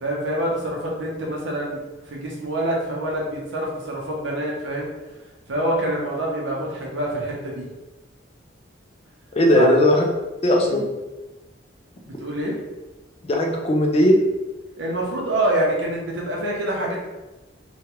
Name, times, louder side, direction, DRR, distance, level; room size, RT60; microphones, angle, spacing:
voice 1, 0.0-4.9 5.5-7.7 9.5-9.8 10.6-10.8 12.0-12.6 14.8-17.0, right 1 dB, 75° right, -2 dB, 0.8 m, -26 dB
voice 2, 9.3-10.1 10.4-10.9 13.2-14.2, left 1 dB, 30° left, 1 dB, 0.4 m, -17 dB
2.9 x 2.3 x 2.9 m, 1.1 s
head